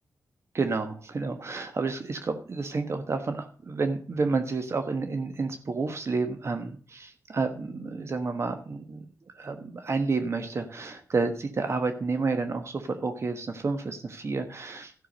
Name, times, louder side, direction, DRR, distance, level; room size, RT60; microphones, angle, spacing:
voice 1, 0.5-9.1 9.3-14.9, right 4 dB, 50° right, 7 dB, 1.3 m, -30 dB
13.0 x 6.1 x 6.3 m, 0.42 s
cardioid pair, 85°, 6 cm